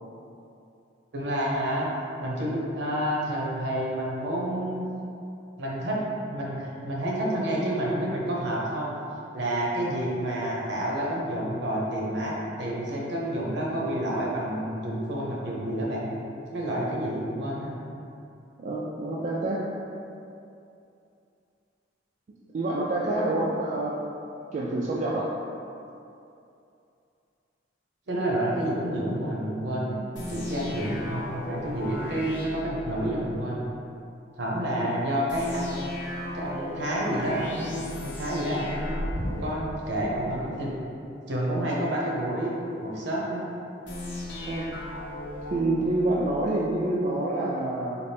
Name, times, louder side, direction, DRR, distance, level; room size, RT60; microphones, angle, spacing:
voice 1, 1.1-1.9 2.2-4.9 5.6-6.0 6.3-8.9 9.3-16.1 16.5-17.7 23.1-23.3 28.1-30.0 30.3-33.6 34.4-35.9 36.3-39.1 39.4-40.8 41.3-42.5 42.8-43.4, right 1 dB, 65° right, -4 dB, 0.8 m, -29 dB
voice 2, 18.6-19.6 22.3-24.0 24.5-25.3 44.5-44.7 45.5-48.0, right 2 dB, 40° right, -5 dB, 0.3 m, -27 dB
Game Over, 30.2-33.4 35.3-40.5 43.9-46.5, left 1 dB, 75° left, 0.7 m, -36 dB
4.2 x 2.4 x 3.3 m, 2.6 s
head